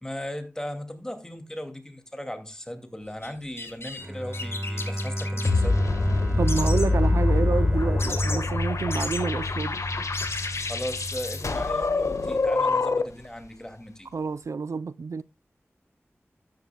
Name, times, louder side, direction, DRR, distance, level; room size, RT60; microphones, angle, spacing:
voice 1, 0.0-6.1 10.7-14.1, equal, 10° left, 2.4 m, -37 dB
sound 1, 3.2-3.3 3.6-4.1 4.3-5.5 6.5-6.9 8.0-8.4 8.9-9.2 9.8-9.9 10.1-10.7, left 2 dB, 55° left, 3.0 m, -35 dB
Bowed string instrument, 4.0-9.9, equal, 25° right, 1.8 m, -32 dB
sound 2, 5.4-13.3, left 3 dB, 80° left, 1.4 m, -25 dB
voice 2, 6.4-9.8 14.1-15.2, right 4 dB, 80° right, 0.5 m, -28 dB
12.5 x 10.5 x 2.3 m
wide cardioid pair, 50°, 5 cm